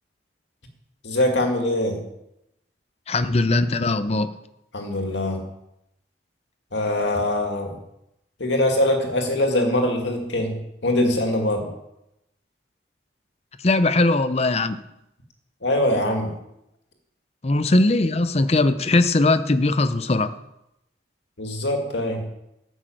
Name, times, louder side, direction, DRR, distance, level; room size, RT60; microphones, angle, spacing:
voice 1, 1.0-2.0 4.7-5.4 6.7-7.8 8.4-11.7 15.6-16.3 21.4-22.3, left 1 dB, 80° left, 3 dB, 2.2 m, -23 dB
voice 2, 3.1-4.3 13.6-14.8 17.4-20.3, left 2 dB, 35° left, 12 dB, 0.6 m, -20 dB
12.0 x 6.3 x 7.8 m, 0.84 s
head